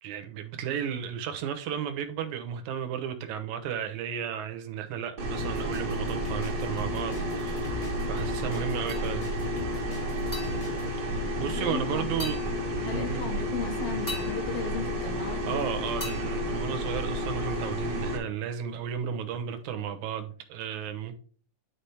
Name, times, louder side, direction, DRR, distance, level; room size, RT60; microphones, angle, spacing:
voice 1, 0.0-9.2 11.0-12.4 12.8-13.2 15.3-21.2, right 8 dB, 70° right, 2.3 m, -34 dB
sound 1, 5.2-18.2, equal, 40° right, 1.6 m, -31 dB
sound 2, 5.4-10.8, left 2 dB, 85° left, 4.0 m, -42 dB
sound 3, 8.9-9.5 10.3-11.7 12.2-13.2 14.1-15.5 16.0-17.4, left 1 dB, 15° left, 2.7 m, -43 dB
voice 2, 11.5-12.1 12.8-15.9, left 5 dB, 60° left, 1.9 m, -36 dB
10.0 x 5.0 x 3.4 m
omnidirectional pair, 3.6 m